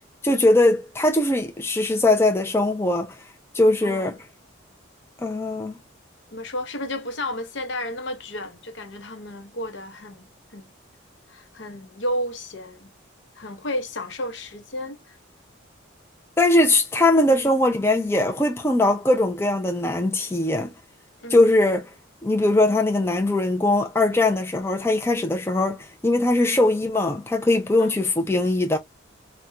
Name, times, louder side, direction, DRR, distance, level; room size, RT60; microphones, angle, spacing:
voice 1, 0.2-3.2 3.5-4.2 5.2-5.7 16.4-20.7 21.3-21.9 22.2-28.8, left 2 dB, 10° left, 0.3 m, -20 dB
voice 2, 3.8-4.1 6.3-10.7 11.3-12.9 13.3-15.2 17.3-17.5 21.2-21.6 26.4-26.6 27.8-28.0, left 1 dB, 60° left, 0.8 m, -32 dB
4.1 x 2.2 x 2.3 m
head